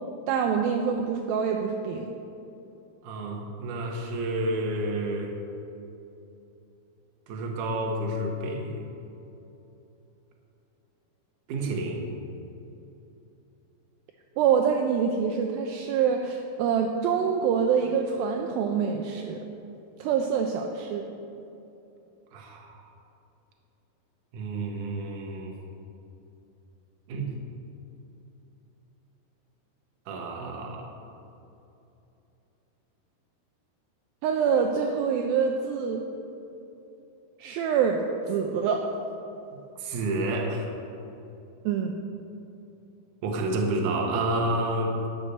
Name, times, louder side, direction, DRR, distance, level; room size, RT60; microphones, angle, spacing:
voice 1, 0.3-2.1 14.4-19.4 20.0-21.0 34.2-36.0 37.4-38.0 38.3-38.8 41.7-41.9, right 7 dB, 80° right, 2 dB, 2.3 m, -25 dB
voice 2, 3.0-5.3 7.3-8.8 11.5-12.1 22.3-22.8 24.3-25.6 27.1-27.3 30.1-30.9 39.8-40.7 43.2-45.0, right 2 dB, 65° right, 1 dB, 2.5 m, -29 dB
11.0 x 6.9 x 6.8 m, 2.9 s
omnidirectional pair, 4.4 m